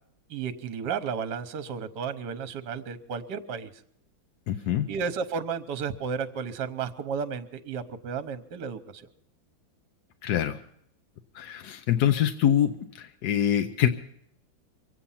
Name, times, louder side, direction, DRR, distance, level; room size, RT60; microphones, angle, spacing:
voice 1, 0.3-3.7 4.9-9.1, right 6 dB, 65° right, 11 dB, 1.5 m, -33 dB
voice 2, 4.5-4.9 10.2-10.6 11.3-12.7 13.0-13.9, left 10 dB, 65° left, 7 dB, 1.1 m, -24 dB
24.0 x 8.8 x 5.6 m, 0.70 s
omnidirectional pair, 2.1 m